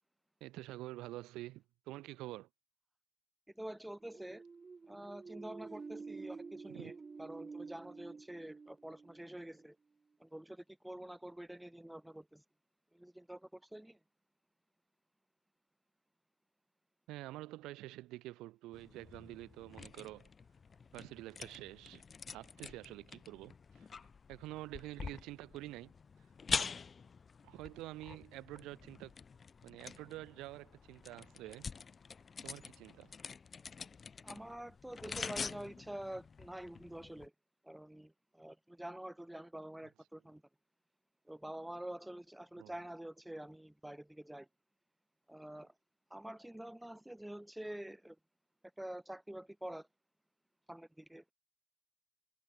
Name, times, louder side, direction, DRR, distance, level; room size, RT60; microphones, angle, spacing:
voice 1, 0.4-2.5 6.7-6.9 17.1-20.3 20.9-23.9 24.3-25.9 26.5-26.7 27.4-29.2 29.6-31.7 32.4-33.1 42.6-42.7, right 17 dB, 85° right, 5.2 m, -48 dB
voice 2, 3.5-4.4 4.9-6.9 7.2-9.8 10.2-12.4 12.9-14.0 34.2-37.3 37.6-40.4 41.3-44.5 45.3-45.7 46.1-48.2 48.8-49.9 50.7-51.3, right 1 dB, 5° right, 7.1 m, -47 dB
sound 1, 4.0-9.7, right 4 dB, 30° right, 4.7 m, -50 dB
sound 2, 18.7-37.3, left 5 dB, 35° left, 4.2 m, -46 dB
cardioid pair, 90°, 0 cm